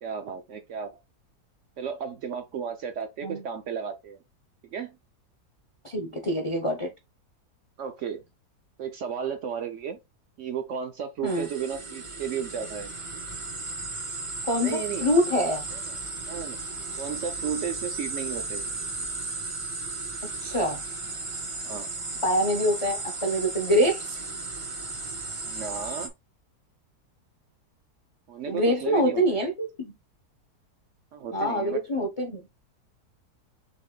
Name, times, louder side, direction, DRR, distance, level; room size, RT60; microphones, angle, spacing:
voice 1, 0.0-0.9 1.8-4.2 4.7-4.9 7.8-8.2 8.8-10.0 10.4-12.9 14.6-15.0 15.7-16.0 16.3-16.6 16.9-18.6 21.6-21.9 25.5-26.1 28.3-29.4 31.1-31.8, right 7 dB, 65° right, 0.8 m, -34 dB
voice 2, 5.8-6.9 11.2-11.5 14.5-15.6 20.2-20.8 22.2-24.2 28.5-29.9 31.3-32.5, equal, 40° left, 0.4 m, -25 dB
sound 1, 11.3-26.1, right 3 dB, 35° right, 0.5 m, -35 dB
4.1 x 3.0 x 3.6 m
omnidirectional pair, 1.7 m